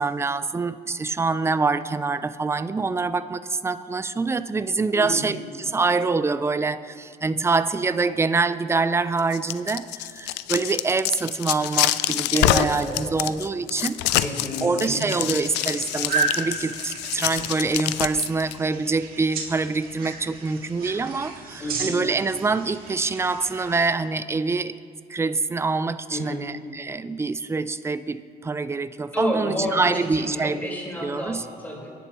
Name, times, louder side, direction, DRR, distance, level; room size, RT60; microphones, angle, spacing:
voice 1, 0.0-14.2 14.6-24.8 25.1-30.7 31.0-31.4, right 4 dB, 15° right, 13 dB, 0.5 m, -25 dB
voice 2, 4.9-5.3 12.3-13.3 14.2-15.2 15.5-15.7 21.6-22.0 26.1-26.4 29.1-31.9, left 1 dB, 10° left, -3 dB, 4.4 m, -30 dB
sound 1, 9.2-18.5, left 15 dB, 90° left, 0.4 m, -26 dB
Insect, 14.5-14.8 15.0-15.2 15.5-15.8 16.0-16.2 16.5-18.0, left 4 dB, 40° left, 2.3 m, -41 dB
sound 2, 14.8-23.9, right 4 dB, 60° right, 2.1 m, -34 dB
26.0 x 11.0 x 3.1 m, 2.2 s
cardioid pair, 110°, 17 cm